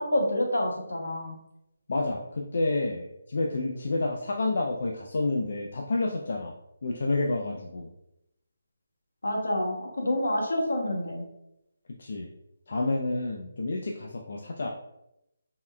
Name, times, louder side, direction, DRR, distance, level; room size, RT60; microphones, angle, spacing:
voice 1, 0.0-1.4 9.2-11.2, left 1 dB, 85° left, 0 dB, 0.8 m, -28 dB
voice 2, 1.9-6.5 6.8-7.9 12.0-12.3 12.7-14.7, left 2 dB, 65° left, 0 dB, 0.3 m, -29 dB
3.6 x 2.1 x 2.2 m, 0.84 s
figure-of-eight pair, 155°, 0 cm